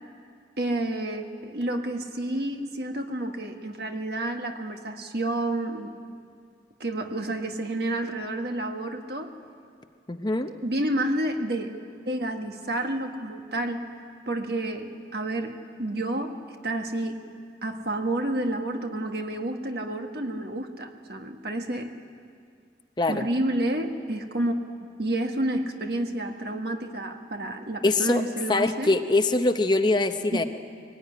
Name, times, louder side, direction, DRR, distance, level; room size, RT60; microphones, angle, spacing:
voice 1, 0.6-5.9 6.8-9.3 10.6-11.7 12.1-13.9 14.3-16.4 16.6-17.2 17.6-21.9 23.1-24.5 25.0-28.9 30.3-30.5, right 1 dB, 60° right, 4 dB, 1.7 m, -30 dB
voice 2, 10.1-10.5 23.0-23.3 27.8-28.2 28.5-30.4, left 2 dB, 25° left, 7 dB, 0.7 m, -23 dB
22.0 x 18.5 x 9.9 m, 2.2 s
head